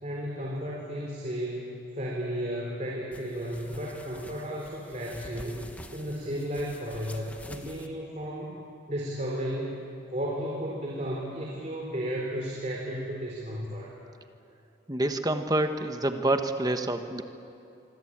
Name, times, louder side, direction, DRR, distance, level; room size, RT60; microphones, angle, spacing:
voice 1, 0.0-5.7 5.9-8.6 8.9-9.8 10.1-13.9, equal, 35° right, -2 dB, 3.7 m, -34 dB
sound 1, 3.1-7.9, left 1 dB, 5° left, 1.3 m, -47 dB
voice 2, 14.9-17.2, right 1 dB, 20° right, 7 dB, 1.2 m, -27 dB
26.0 x 24.5 x 8.8 m, 2.8 s
head